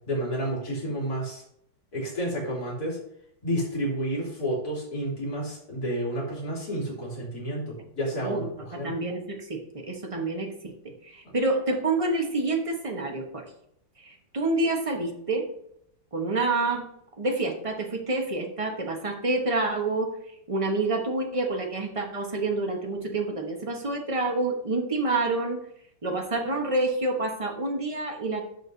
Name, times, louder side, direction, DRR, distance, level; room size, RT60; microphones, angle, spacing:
voice 1, 0.1-1.4 1.9-3.0 3.4-8.4 8.8-8.9 11.3-11.4, right 1 dB, 50° left, -5 dB, 3.5 m, -30 dB
voice 2, 8.2-13.5 14.0-15.5 16.1-16.9 17.2-20.1 20.5-25.6 26.0-28.4, right 2 dB, 20° right, 2 dB, 0.9 m, -28 dB
14.0 x 4.8 x 2.7 m, 0.72 s
omnidirectional pair, 2.1 m